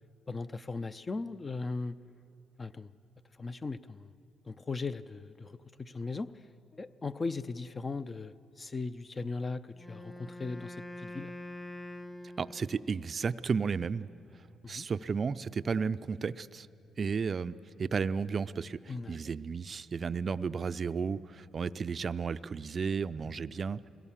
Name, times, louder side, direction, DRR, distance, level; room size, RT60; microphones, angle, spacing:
voice 1, 0.3-2.0 2.6-2.9 3.4-4.1 4.5-6.3 6.7-11.3 14.6-14.9 18.9-19.2, left 3 dB, 30° left, 13 dB, 0.5 m, -38 dB
Wind instrument woodwind instrument, 9.7-13.0, left 1 dB, 10° left, 1.3 m, -45 dB
voice 2, 12.4-14.1 14.7-16.7 17.0-23.9, right 5 dB, 40° right, 15 dB, 0.4 m, -33 dB
22.0 x 17.0 x 7.4 m, 2.7 s
cardioid pair, 90°, 0 cm